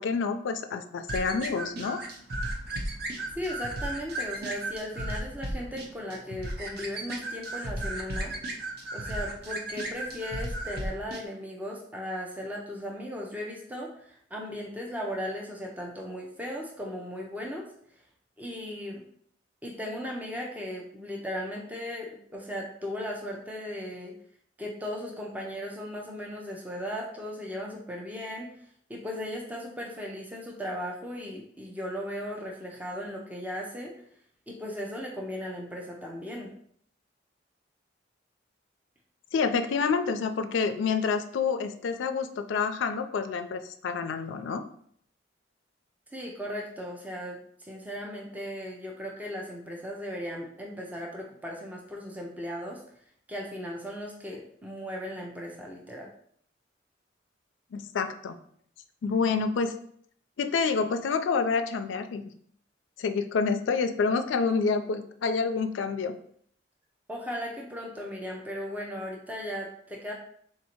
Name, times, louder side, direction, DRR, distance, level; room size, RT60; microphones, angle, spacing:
voice 1, 0.0-2.0 39.3-44.6 57.7-58.4 59.0-59.8 60.4-62.2 63.0-66.1, left 5 dB, 80° left, 8 dB, 0.4 m, -28 dB
sound 1, 1.1-11.2, right 1 dB, 55° right, 0.7 m, -35 dB
voice 2, 3.4-8.3 8.9-17.6 18.4-19.0 19.6-24.2 24.6-33.9 34.5-36.5 46.1-52.8 53.3-56.1 67.1-70.1, equal, 10° right, -1 dB, 0.5 m, -37 dB
3.6 x 2.7 x 4.3 m, 0.63 s
head